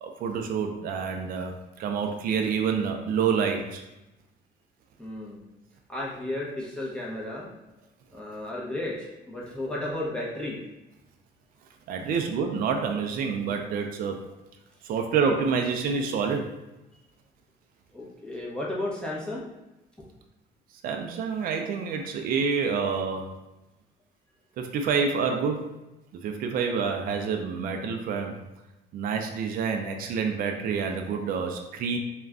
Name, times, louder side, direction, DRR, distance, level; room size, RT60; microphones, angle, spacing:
voice 1, 0.0-1.5 1.8-3.8 11.9-14.2 14.8-16.5 20.8-23.3 24.6-25.7 26.2-28.4 28.9-32.0, right 6 dB, 60° right, 4 dB, 0.4 m, -27 dB
voice 2, 5.0-5.4 5.9-7.5 8.1-10.6 17.9-19.4, left 1 dB, 5° left, -6 dB, 0.6 m, -33 dB
2.4 x 2.2 x 3.4 m, 0.98 s
cardioid pair, 110°, 17 cm